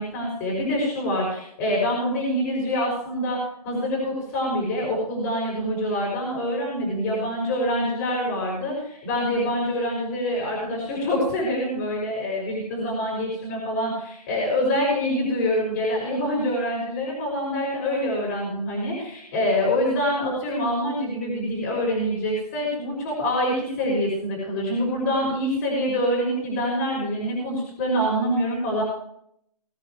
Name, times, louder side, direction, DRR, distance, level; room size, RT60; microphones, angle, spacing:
voice 1, 0.0-28.8, equal, 25° left, -2 dB, 6.3 m, -25 dB
21.5 x 9.4 x 3.3 m, 0.69 s
hypercardioid pair, 160°, 20 cm